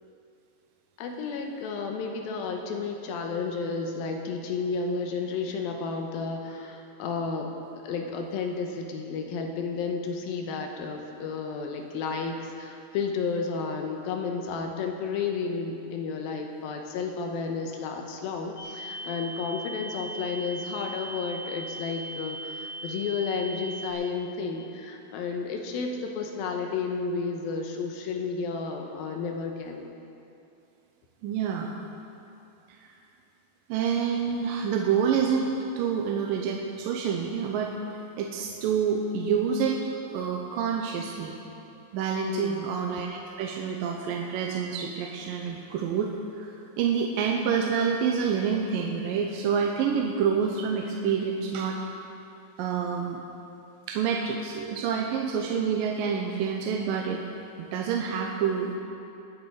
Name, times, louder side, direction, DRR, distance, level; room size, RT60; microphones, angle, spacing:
voice 1, 1.0-29.9 42.3-42.7, left 5 dB, 90° left, 3 dB, 2.8 m, -32 dB
sound 1, 18.6-23.9, right 1 dB, 35° left, 2.2 m, -39 dB
voice 2, 31.2-31.7 33.7-37.7 38.2-39.8 40.1-41.3 41.9-51.8 52.6-53.2 53.9-57.2 57.6-58.8, right 6 dB, 80° right, 1 dB, 2.4 m, -27 dB
20.5 x 8.3 x 4.9 m, 2.7 s
omnidirectional pair, 4.1 m